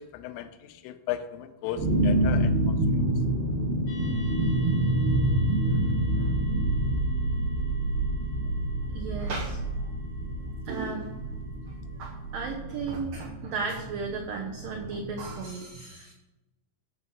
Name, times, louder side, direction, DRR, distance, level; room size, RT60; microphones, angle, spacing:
voice 1, 0.0-2.8 6.2-6.4, left 11 dB, 85° left, 10 dB, 3.3 m, -36 dB
sound 1, 1.8-15.4, right 1 dB, 65° right, 3.0 m, -27 dB
sound 2, 3.9-12.6, left 1 dB, 70° left, 1.0 m, -52 dB
voice 2, 8.9-9.6 10.7-11.1 12.0-16.1, right 4 dB, 90° right, 1 dB, 1.9 m, -35 dB
15.5 x 6.6 x 5.5 m, 1.0 s
omnidirectional pair, 5.7 m